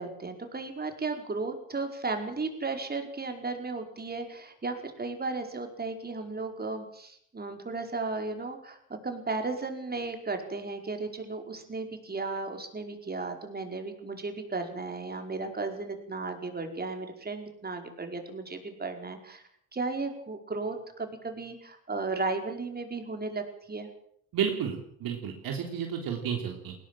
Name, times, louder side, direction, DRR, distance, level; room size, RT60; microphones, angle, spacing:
voice 1, 0.0-19.4 19.7-23.9, right 3 dB, 25° right, 5 dB, 5.0 m, -35 dB
voice 2, 24.3-26.7, right 8 dB, 65° right, 3 dB, 3.6 m, -31 dB
20.5 x 17.5 x 7.7 m, 0.66 s
supercardioid pair, 85°, 37 cm